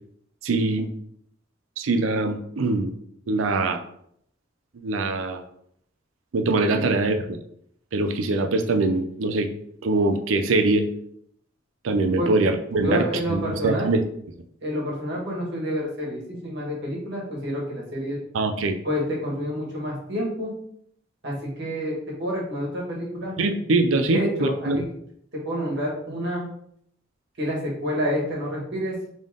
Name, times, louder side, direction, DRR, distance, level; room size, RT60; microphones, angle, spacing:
voice 1, 0.4-0.9 1.8-2.9 3.3-3.8 4.7-5.4 6.3-7.2 7.9-9.5 9.8-10.9 11.8-13.0 13.3-14.0 18.3-18.8 23.4-24.8, right 2 dB, 85° right, 8 dB, 0.5 m, -23 dB
voice 2, 12.8-13.9 14.6-18.2 18.8-20.5 21.2-23.4 24.1-24.8 25.4-26.4 27.4-29.0, equal, 60° right, -3 dB, 1.7 m, -28 dB
3.7 x 3.6 x 3.7 m, 0.70 s
head